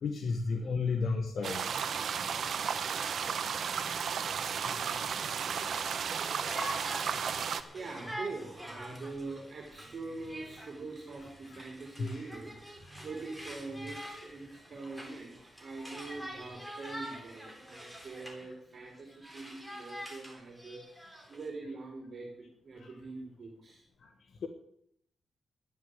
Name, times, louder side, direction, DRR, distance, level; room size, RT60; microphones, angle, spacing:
voice 1, 0.0-1.6 4.5-5.6 5.9-6.1 6.5-6.8 7.2-7.3 12.0-12.2 24.0-24.1 24.4-24.5, left 4 dB, 65° left, 5 dB, 1.3 m, -35 dB
voice 2, 0.5-1.2 2.3-3.0 7.3-12.6 12.8-23.8, right 3 dB, 50° right, 0 dB, 3.6 m, -44 dB
sound 1, 1.4-7.6, right 7 dB, 70° right, 1.0 m, -33 dB
Conversation, 5.7-18.5 18.8-21.5, equal, ahead, 3.5 m, -46 dB
11.5 x 9.6 x 8.0 m, 0.71 s
cardioid pair, 105°, 0 cm